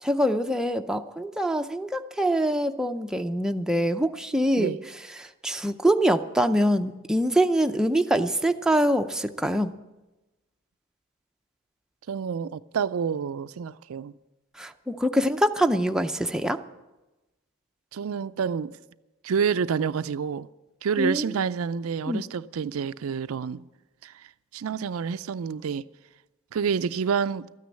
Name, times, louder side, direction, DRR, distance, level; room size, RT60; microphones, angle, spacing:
voice 1, 0.0-4.7 5.2-9.7 14.6-16.6 21.0-21.3 22.1-22.3, equal, 5° right, 0.5 m, -24 dB
voice 2, 12.1-14.1 17.9-18.8 19.2-20.5 20.8-23.7 24.0-24.1 24.5-25.8 26.5-27.5, right 6 dB, 80° right, 0.4 m, -28 dB
13.5 x 9.4 x 8.3 m
head